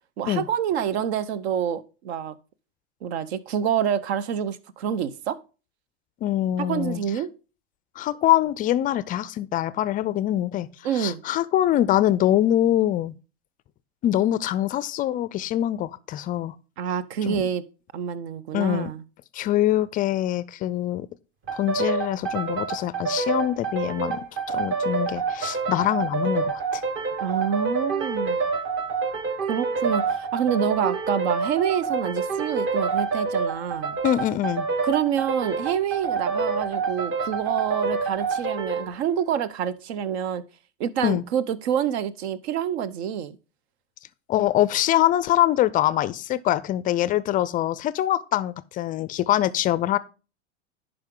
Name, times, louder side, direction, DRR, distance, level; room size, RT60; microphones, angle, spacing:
voice 1, 0.2-2.3 3.0-5.4 6.7-7.3 10.8-11.2 16.8-17.6 17.9-19.0 27.2-28.4 29.4-34.0 34.8-40.4 40.8-43.4, right 8 dB, 70° right, 0.8 m, -27 dB
voice 2, 6.2-7.0 8.0-10.7 10.9-13.1 14.0-16.6 17.2-17.4 18.5-18.9 19.3-21.1 21.5-26.8 34.0-34.7 41.0-41.2 44.3-50.0, left 13 dB, 25° left, 0.3 m, -24 dB
sound 1, 21.5-38.9, right 5 dB, 35° right, 1.3 m, -27 dB
10.5 x 5.0 x 3.7 m
hypercardioid pair, 110°, 34 cm